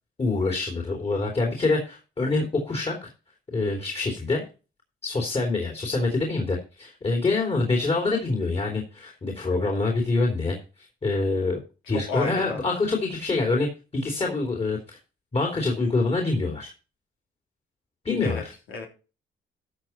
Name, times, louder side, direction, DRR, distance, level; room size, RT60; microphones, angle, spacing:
voice 1, 0.2-3.1 3.5-4.4 5.0-11.6 11.9-15.0 15.3-16.7 18.0-18.5, left 3 dB, 30° left, 0 dB, 3.3 m, -26 dB
voice 2, 11.9-12.6 18.2-18.9, left 4 dB, 90° left, 1 dB, 3.4 m, -33 dB
13.5 x 6.6 x 4.5 m, 0.33 s
cardioid pair, 90°, 20 cm